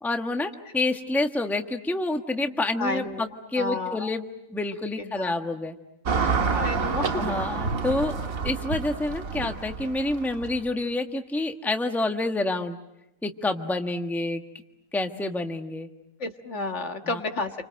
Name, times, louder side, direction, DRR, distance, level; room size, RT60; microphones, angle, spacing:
voice 1, 0.0-4.2 4.5-5.8 7.1-8.2 8.4-12.8 13.2-14.4 14.9-15.9 17.0-17.2, left 2 dB, ahead, 5 dB, 1.3 m, -28 dB
voice 2, 2.8-3.3 3.6-4.1 5.0-5.5 6.4-7.2 16.2-17.5, left 3 dB, 55° left, 6 dB, 1.8 m, -31 dB
Car passing by / Traffic noise roadway noise, 6.1-10.7, right 5 dB, 75° right, 1.9 m, -28 dB
29.5 x 25.5 x 7.7 m, 0.89 s
omnidirectional pair, 1.5 m